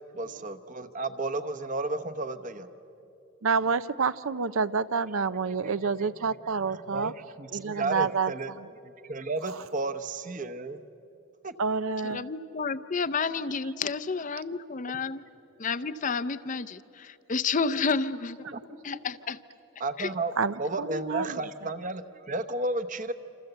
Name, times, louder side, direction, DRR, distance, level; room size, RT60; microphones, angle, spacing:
voice 1, 0.1-2.7 6.0-6.2 6.7-8.5 8.8-10.8 11.4-11.5 18.5-18.8 19.8-20.3 20.6-23.1, right 2 dB, 35° right, 10 dB, 0.9 m, -33 dB
voice 2, 3.4-7.1 7.5-8.3 8.6-8.7 9.4-9.7 11.6-12.3 20.4-21.7, right 5 dB, 75° right, 14 dB, 0.6 m, -28 dB
voice 3, 12.0-15.2 15.6-18.4 18.8-19.4 20.0-20.1, left 4 dB, 35° left, 11 dB, 0.5 m, -30 dB
28.0 x 26.5 x 8.0 m, 3.0 s
head